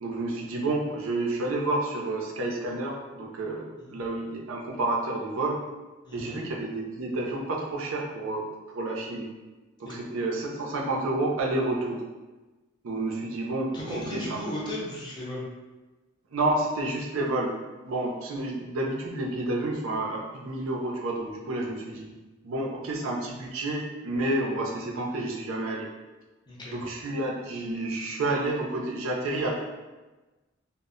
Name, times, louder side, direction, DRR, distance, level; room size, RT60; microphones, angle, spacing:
voice 1, 0.0-5.6 6.1-9.3 9.8-12.0 12.8-14.4 16.3-22.0 22.4-25.9 26.7-29.6, right 2 dB, 70° right, -1 dB, 0.5 m, -30 dB
voice 2, 6.0-6.4 9.8-10.0 13.7-15.4 26.5-26.8, left 1 dB, 20° left, -5 dB, 0.6 m, -36 dB
2.1 x 2.0 x 3.6 m, 1.2 s
head